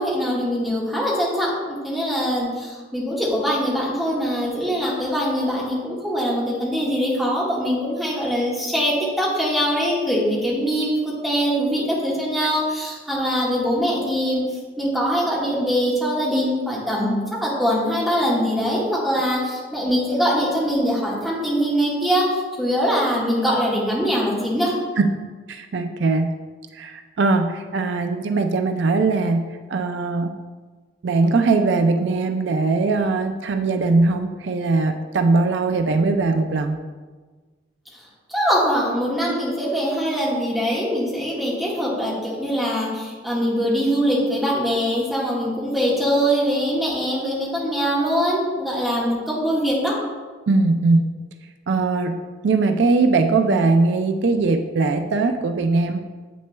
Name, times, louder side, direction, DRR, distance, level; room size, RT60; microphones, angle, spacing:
voice 1, 0.0-14.4 14.8-24.7 38.3-49.9, equal, ahead, -7 dB, 1.5 m, -22 dB
voice 2, 25.5-26.3 26.7-30.3 31.0-36.8 50.5-51.0 51.7-52.2 52.4-56.1, right 3 dB, 75° right, 6 dB, 0.4 m, -20 dB
7.8 x 6.2 x 2.2 m, 1.4 s
head